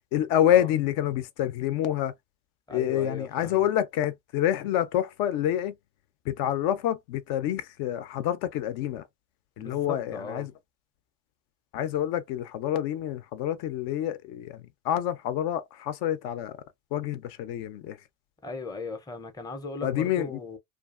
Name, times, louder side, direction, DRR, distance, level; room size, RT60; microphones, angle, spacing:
voice 1, 0.1-2.1 2.7-5.8 6.3-9.0 9.6-10.5 11.7-16.6 16.9-18.0 19.8-20.4, left 11 dB, 65° left, 0.5 m, -27 dB
voice 2, 2.7-3.7 9.6-10.5 18.4-20.6, left 3 dB, 10° left, 0.5 m, -38 dB
2.5 x 2.4 x 2.3 m
supercardioid pair, 100°, 41 cm